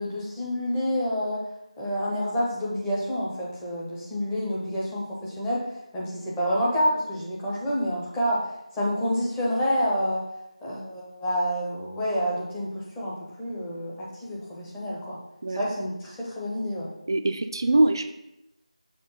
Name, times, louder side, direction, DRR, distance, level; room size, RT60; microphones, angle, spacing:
voice 1, 0.0-1.4 1.8-5.6 5.9-8.4 8.7-10.2 10.6-15.2 15.6-16.9, equal, 5° left, -7 dB, 0.6 m, -28 dB
voice 2, 17.1-18.1, right 2 dB, 40° right, 8 dB, 0.4 m, -23 dB
6.6 x 3.0 x 5.3 m, 0.84 s
figure-of-eight pair, 170°, 4 cm